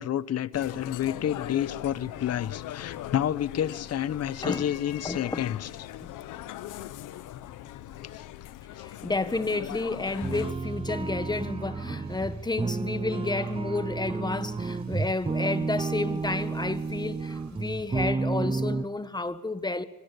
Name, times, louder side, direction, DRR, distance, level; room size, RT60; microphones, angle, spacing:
voice 1, 0.0-5.7 8.1-8.3, left 10 dB, 55° left, 0.9 m, -29 dB
sound 1, 0.5-10.5, left 13 dB, 90° left, 1.1 m, -40 dB
voice 2, 5.0-5.4 6.0-6.1 8.8-19.8, left 2 dB, 15° left, 1.5 m, -31 dB
sound 2, 10.1-18.1, right 6 dB, 65° right, 4.6 m, -51 dB
sound 3, 10.2-18.8, right 4 dB, 20° right, 0.8 m, -31 dB
24.5 x 18.5 x 7.0 m
cardioid pair, 90°, 30 cm